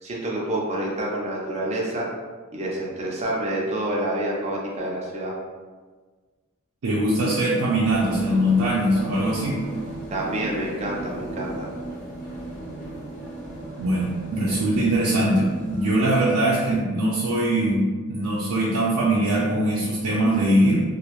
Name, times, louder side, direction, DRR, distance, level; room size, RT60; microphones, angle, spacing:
voice 1, 0.0-2.0 2.5-5.4 10.1-11.7, right 1 dB, 30° right, -3 dB, 0.5 m, -28 dB
voice 2, 6.8-9.6 13.8-20.8, right 1 dB, 85° right, -7 dB, 0.5 m, -22 dB
sound 1, 7.8-16.3, right 2 dB, 35° left, 0.7 m, -36 dB
2.5 x 2.0 x 2.9 m, 1.4 s
head